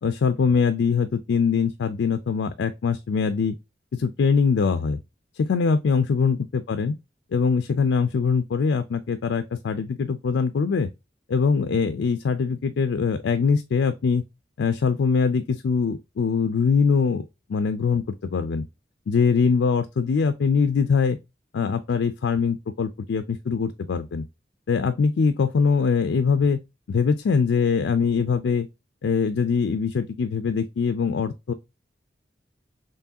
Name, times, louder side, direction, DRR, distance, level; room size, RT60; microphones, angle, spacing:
voice 1, 0.0-3.6 3.9-5.0 5.3-7.0 7.3-10.9 11.3-14.2 14.6-18.6 19.1-21.2 21.5-24.2 24.7-26.6 26.9-28.7 29.0-31.5, left 5 dB, 85° left, 0.4 m, -22 dB
4.6 x 3.1 x 2.6 m
head